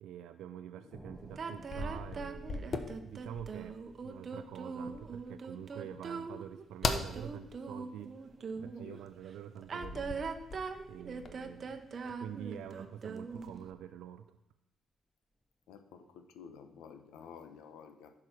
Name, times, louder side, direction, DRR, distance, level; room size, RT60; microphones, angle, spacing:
voice 1, 0.0-8.3 8.6-10.3 10.9-14.4, right 10 dB, 85° right, 9 dB, 0.4 m, -47 dB
sound 1, 0.9-12.3 12.7-12.8, equal, 5° left, 0.8 m, -53 dB
sound 2, 1.2-3.7 6.8-7.1 9.8-12.7 13.2-13.8, left 3 dB, 45° left, 0.9 m, -39 dB
feminine voice freestyle scatting melody, 1.4-8.9 9.6-13.6, right 5 dB, 45° right, 0.8 m, -41 dB
voice 2, 15.7-18.1, left 6 dB, 90° left, 8 dB, 0.8 m, -52 dB
11.0 x 4.9 x 5.9 m, 0.89 s
cardioid pair, 90°, 0 cm